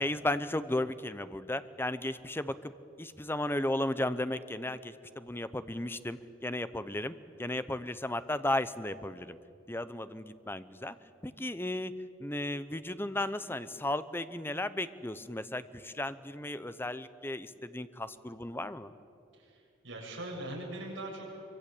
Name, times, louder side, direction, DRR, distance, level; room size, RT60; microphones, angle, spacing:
voice 1, 0.0-2.7 3.0-9.4 9.7-10.9 11.2-11.9 12.2-18.9, left 1 dB, 10° left, 13 dB, 0.8 m, -35 dB
voice 2, 19.3-21.4, right 1 dB, 70° right, -1 dB, 7.5 m, -41 dB
25.0 x 24.0 x 8.6 m, 2.6 s
head